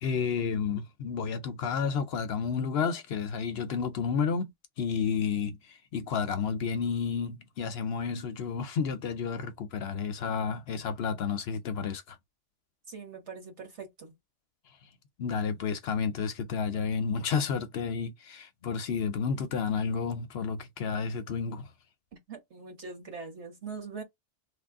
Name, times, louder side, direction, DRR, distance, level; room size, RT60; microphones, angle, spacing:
voice 1, 0.0-12.2 15.2-21.7, left 6 dB, 65° left, 0.8 m, -31 dB
voice 2, 12.9-14.1 22.3-24.0, right 4 dB, 75° right, 1.7 m, -42 dB
3.3 x 2.4 x 3.5 m
omnidirectional pair, 1.2 m